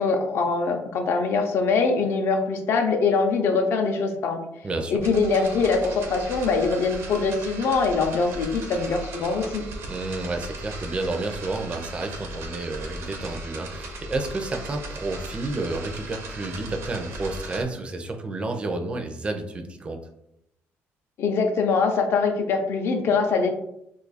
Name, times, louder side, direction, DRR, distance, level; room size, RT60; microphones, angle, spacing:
voice 1, 0.0-4.4 4.9-9.6 21.2-23.5, left 4 dB, 55° left, 4 dB, 0.5 m, -23 dB
voice 2, 4.6-5.0 9.9-20.0, right 2 dB, 20° right, 4 dB, 0.4 m, -30 dB
sound 1, 5.0-17.6, right 2 dB, 65° right, 0.6 m, -37 dB
2.6 x 2.4 x 3.9 m, 0.79 s
cardioid pair, 140°, 5 cm